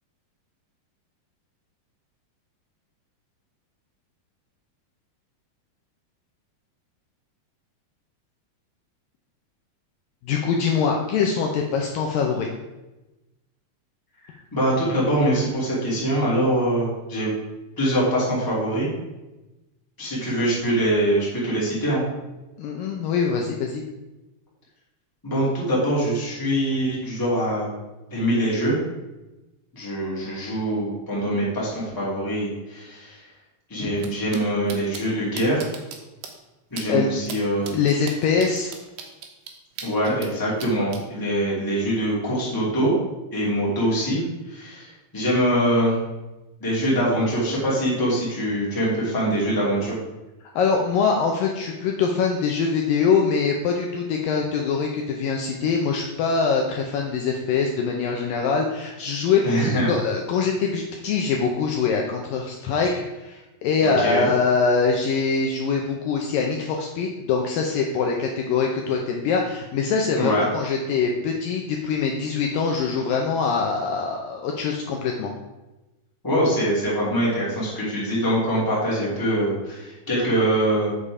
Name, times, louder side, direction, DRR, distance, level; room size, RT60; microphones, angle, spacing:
voice 1, 10.2-12.5 22.6-23.8 36.9-37.1 37.7-38.7 50.6-75.3, left 5 dB, 75° left, 1 dB, 2.2 m, -23 dB
voice 2, 14.5-17.3 17.8-18.9 20.0-22.0 25.2-27.7 28.1-28.8 29.7-33.2 33.7-35.7 36.7-37.7 39.8-42.9 43.3-44.2 44.5-46.0 46.6-50.0 59.4-59.9 63.8-64.3 70.1-70.4 76.2-80.9, right 1 dB, 5° left, -6 dB, 2.0 m, -23 dB
sound 1, 34.0-34.1 34.3-34.4 34.7-35.0 35.4-36.0 36.2-36.3 36.8-36.9 37.2-37.4 37.6-40.3 40.6-41.0, right 7 dB, 70° right, 2.5 m, -37 dB
7.8 x 6.8 x 4.9 m, 1.0 s
omnidirectional pair, 4.5 m